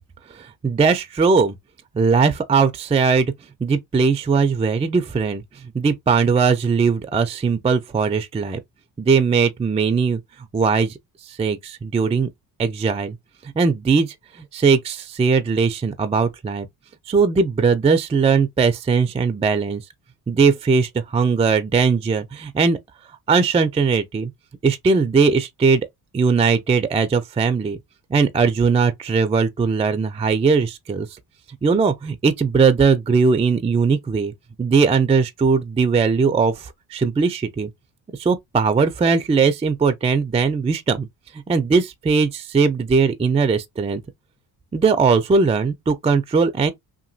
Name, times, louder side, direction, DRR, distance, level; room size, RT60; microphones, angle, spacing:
voice 1, 0.3-1.5 1.9-3.3 3.6-5.4 5.7-8.6 9.0-10.2 10.5-11.0 11.2-12.3 12.6-13.2 13.6-16.7 17.1-19.8 20.3-22.8 23.3-24.3 24.6-25.9 26.1-27.8 28.1-31.1 31.6-34.3 34.6-37.7 38.2-41.1 41.5-44.0 44.7-46.7, right 5 dB, 15° right, 0.3 m, -19 dB
2.9 x 2.6 x 2.5 m
supercardioid pair, 70°, 46 cm